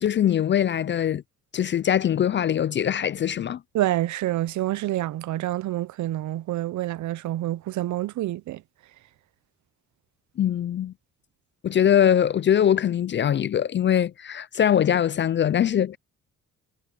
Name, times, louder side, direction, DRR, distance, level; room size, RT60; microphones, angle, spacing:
voice 1, 0.0-1.2 1.5-3.6 10.4-10.9 11.6-16.0, left 9 dB, 40° left, 0.4 m, -22 dB
voice 2, 3.7-8.6, right 14 dB, 70° right, 0.7 m, -27 dB
cardioid pair, 90°, 30 cm